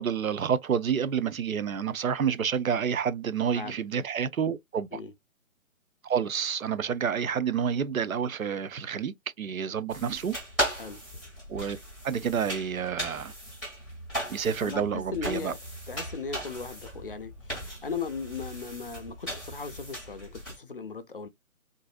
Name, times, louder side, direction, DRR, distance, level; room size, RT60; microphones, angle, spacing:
voice 1, 0.0-5.0 6.0-10.3 11.5-11.8 12.0-13.3 14.3-15.5, right 7 dB, 75° right, 0.7 m, -29 dB
sound 1, 9.9-20.6, equal, ahead, 0.8 m, -37 dB
voice 2, 14.6-15.6 15.9-21.3, left 5 dB, 40° left, 0.5 m, -37 dB
3.9 x 2.5 x 2.4 m
figure-of-eight pair, 150°, 42 cm